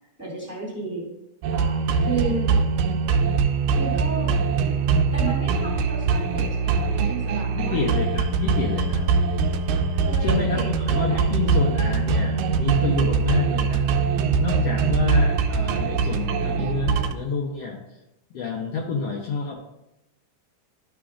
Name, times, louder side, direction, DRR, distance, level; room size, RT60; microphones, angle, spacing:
voice 1, 0.2-1.1 1.5-2.5 3.7-4.4 5.1-7.8 9.9-10.7 11.1-11.3, right 3 dB, 5° right, -4 dB, 1.9 m, -33 dB
sound 1, 1.4-17.1, right 5 dB, 90° right, 2.1 m, -22 dB
voice 2, 7.5-9.1 10.2-13.9 14.3-18.0 18.3-19.7, left 5 dB, 75° left, 0 dB, 1.5 m, -28 dB
11.5 x 6.1 x 2.4 m, 0.88 s
omnidirectional pair, 3.6 m